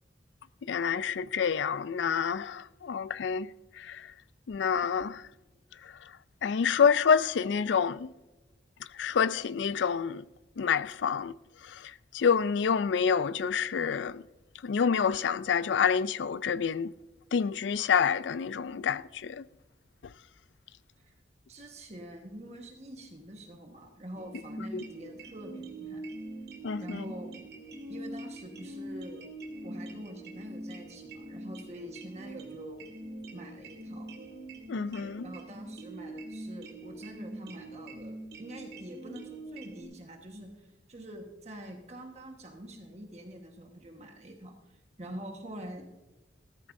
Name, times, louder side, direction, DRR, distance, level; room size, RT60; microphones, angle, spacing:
voice 1, 0.7-3.5 3.9-4.0 4.5-5.2 6.4-8.1 9.0-10.2 10.6-11.3 12.1-14.2 14.6-16.9 17.3-19.4 24.7-24.8 26.6-27.0 34.7-35.2, left 6 dB, 80° left, 0.4 m, -27 dB
voice 2, 21.5-26.0 26.8-27.4 27.9-29.2 29.6-32.9 33.3-34.1 35.2-45.9, right 1 dB, 35° right, 1.3 m, -45 dB
sound 1, 24.2-39.8, right 1 dB, 65° right, 1.8 m, -43 dB
15.5 x 13.5 x 2.6 m
head